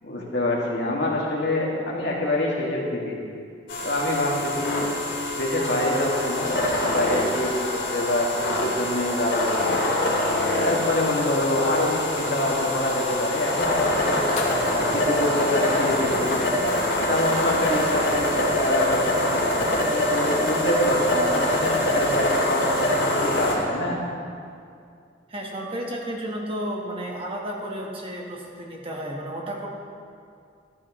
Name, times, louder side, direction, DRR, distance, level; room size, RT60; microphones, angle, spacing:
voice 1, 0.0-3.2 3.8-4.9 5.2-9.9 10.6-14.2 14.8-16.5 17.0-24.0, left 1 dB, 65° left, -3 dB, 2.2 m, -26 dB
sound 1, 3.7-23.6, left 1 dB, 80° left, 3.0 m, -25 dB
sound 2, 5.5-16.0, left 1 dB, 40° left, 1.8 m, -32 dB
voice 2, 25.3-29.7, right 1 dB, 30° right, -1 dB, 1.4 m, -32 dB
13.5 x 13.5 x 3.1 m, 2.4 s
head